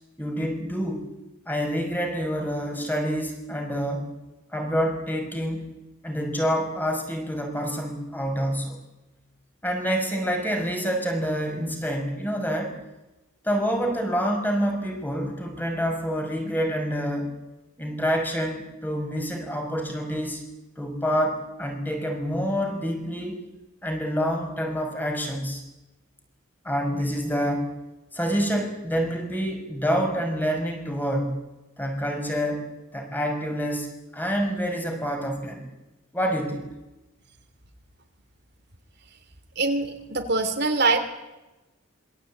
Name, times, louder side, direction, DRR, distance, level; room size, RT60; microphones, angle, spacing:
voice 1, 0.2-1.1 1.5-4.1 4.5-5.7 6.0-8.8 9.6-12.8 13.4-17.3 17.8-20.4 20.8-23.4 23.8-25.6 26.6-27.7 28.1-31.4 31.8-35.7 36.1-36.7, equal, 10° left, 4 dB, 5.9 m, -27 dB
voice 2, 39.5-41.0, right 3 dB, 55° right, 5 dB, 3.0 m, -23 dB
26.5 x 23.5 x 8.8 m, 1.0 s
head